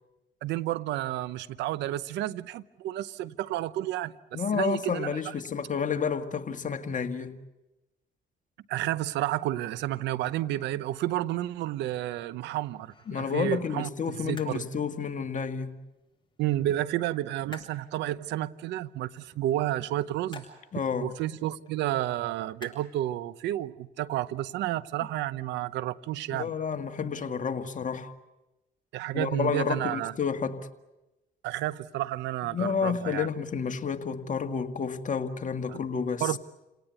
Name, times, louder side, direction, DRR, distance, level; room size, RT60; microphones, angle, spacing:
voice 1, 0.4-4.1 4.5-5.1 8.7-14.7 16.4-20.4 21.0-26.5 28.9-30.1 31.4-33.3 35.7-35.8 36.2-36.4, right 14 dB, 90° right, 0.8 m, -31 dB
voice 2, 4.3-7.4 13.1-15.7 20.7-21.1 26.3-28.1 29.1-30.6 32.4-36.4, left 6 dB, 45° left, 2.0 m, -30 dB
sound 1, 10.4-23.7, left 3 dB, 25° left, 7.8 m, -55 dB
29.0 x 18.5 x 8.3 m
cardioid pair, 70°, 18 cm